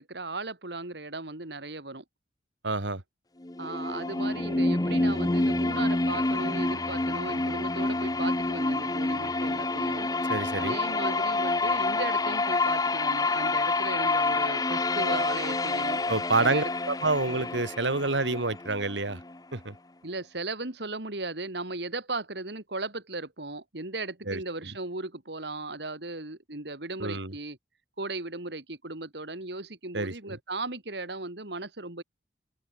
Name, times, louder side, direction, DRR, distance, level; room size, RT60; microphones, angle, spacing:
voice 1, 0.0-2.0 3.6-10.1 10.6-16.0 16.4-16.7 20.0-27.6 28.0-32.0, right 2 dB, 65° right, 2.7 m, -36 dB
voice 2, 2.6-3.0 10.3-10.7 16.1-19.2 19.5-19.7 24.3-24.4 27.0-27.3 29.9-30.4, right 3 dB, 85° right, 2.8 m, -28 dB
sound 1, 3.4-19.4, left 2 dB, 20° left, 0.8 m, -28 dB
open air
head